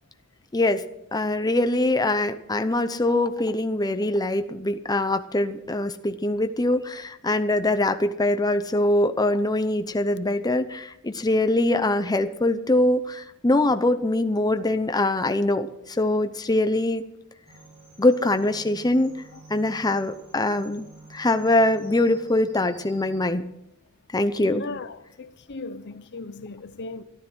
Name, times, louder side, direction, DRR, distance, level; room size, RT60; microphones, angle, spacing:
voice 1, 0.5-0.8 1.1-17.0 18.0-19.1 19.5-20.8 21.1-23.5 24.1-24.6, left 1 dB, 20° left, 0.8 m, -23 dB
sound 1, 17.5-23.2, right 3 dB, 30° right, 7.7 m, -50 dB
voice 2, 24.4-27.0, left 3 dB, 55° left, 0.8 m, -37 dB
14.0 x 12.5 x 6.2 m
head